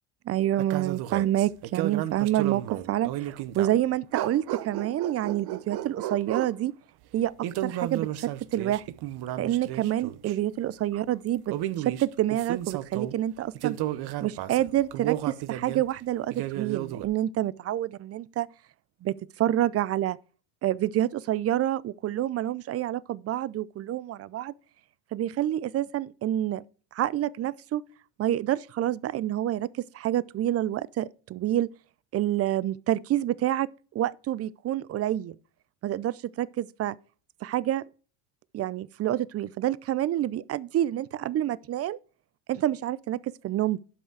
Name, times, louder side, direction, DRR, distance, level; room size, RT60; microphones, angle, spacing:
voice 1, 0.3-6.7 7.1-7.3 7.6-8.8 9.4-13.8 14.2-18.5 19.0-20.2 20.6-24.5 25.1-26.6 26.9-27.8 28.2-31.7 32.1-33.7 33.9-35.4 35.8-37.0 37.4-37.8 38.5-42.0 42.5-43.8, right 13 dB, 30° right, 0.5 m, -28 dB
sound 1, 0.6-3.8 4.1-6.6 7.4-10.4 11.3-13.2 13.5-15.9 16.3-17.0, right 13 dB, 50° right, 1.0 m, -33 dB
11.5 x 5.5 x 4.8 m
hypercardioid pair, 90°, 49 cm